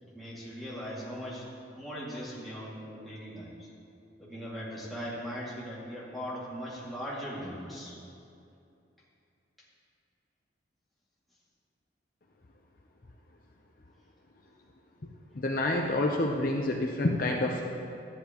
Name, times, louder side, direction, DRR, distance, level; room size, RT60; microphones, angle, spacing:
voice 1, 0.0-1.5 1.8-3.7 4.2-8.0, equal, ahead, -8 dB, 2.1 m, -39 dB
voice 2, 15.3-17.7, left 2 dB, 45° left, 0 dB, 0.6 m, -28 dB
13.5 x 10.5 x 2.9 m, 2.6 s
head